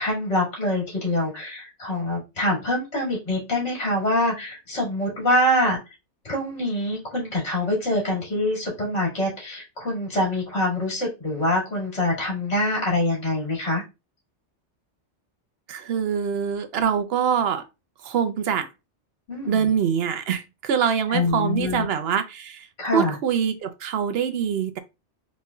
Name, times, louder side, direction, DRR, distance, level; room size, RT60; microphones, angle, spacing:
voice 1, 0.0-5.8 6.2-13.8 19.3-19.7 21.1-21.8 22.8-23.1, left 1 dB, 70° left, 2.5 m, -25 dB
voice 2, 15.7-17.7 18.0-18.7 19.5-22.7 22.9-24.8, right 7 dB, 65° right, 0.8 m, -24 dB
4.3 x 3.0 x 2.3 m
omnidirectional pair, 1.2 m